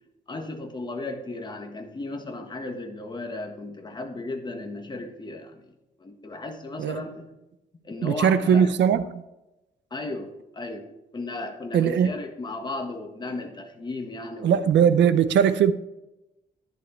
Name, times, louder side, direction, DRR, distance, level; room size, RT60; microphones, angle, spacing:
voice 1, 0.3-7.3 7.8-8.8 9.9-10.9 11.1-14.6, left 2 dB, 25° left, 4 dB, 1.4 m, -35 dB
voice 2, 8.0-9.2 11.7-12.1 14.4-15.7, right 8 dB, 90° right, 12 dB, 0.7 m, -20 dB
11.0 x 10.5 x 3.3 m, 0.97 s
wide cardioid pair, 155°, 18 cm